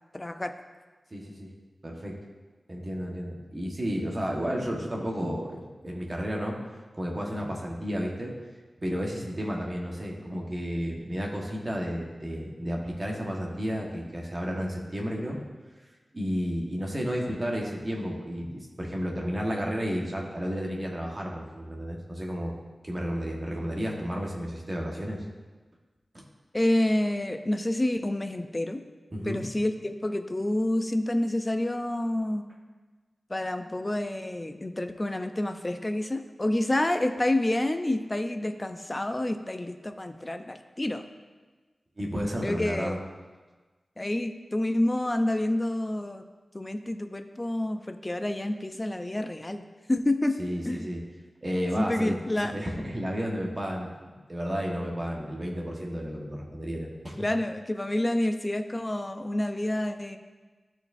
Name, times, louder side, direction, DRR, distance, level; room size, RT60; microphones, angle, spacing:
voice 1, 0.1-0.6 26.5-28.8 29.2-32.5 33.3-41.0 42.4-43.0 44.0-46.3 46.5-49.6 49.9-50.4 50.6-50.9 51.8-52.5 57.2-60.2, left 1 dB, 25° left, 8 dB, 0.5 m, -28 dB
voice 2, 1.1-1.5 1.8-2.3 2.7-6.6 6.9-8.4 8.8-15.4 16.1-22.5 22.8-25.2 26.1-26.2 29.1-29.4 42.0-43.0 50.4-51.0 51.4-53.9 54.3-57.3, equal, 35° right, -1 dB, 1.4 m, -32 dB
13.5 x 4.5 x 2.7 m, 1.3 s
wide cardioid pair, 65°, 0 cm